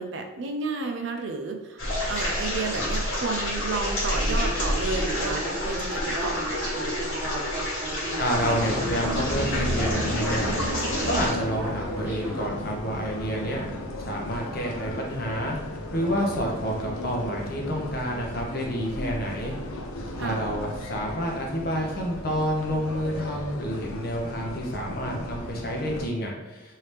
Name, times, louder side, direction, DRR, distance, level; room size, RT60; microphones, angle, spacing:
voice 1, 0.0-6.8 20.2-20.5, right 3 dB, 60° right, 4 dB, 0.4 m, -32 dB
sound 1, 1.8-11.3, left 1 dB, 65° left, 1.3 m, -29 dB
Speech synthesizer, 4.2-12.5, right 1 dB, 10° right, 1.1 m, -36 dB
voice 2, 8.2-13.6 14.0-15.6 15.9-19.5 20.1-26.7, equal, 45° left, 0 dB, 0.7 m, -29 dB
sound 2, 8.3-26.1, left 1 dB, 85° left, 0.5 m, -34 dB
3.2 x 2.7 x 3.2 m, 1.2 s
head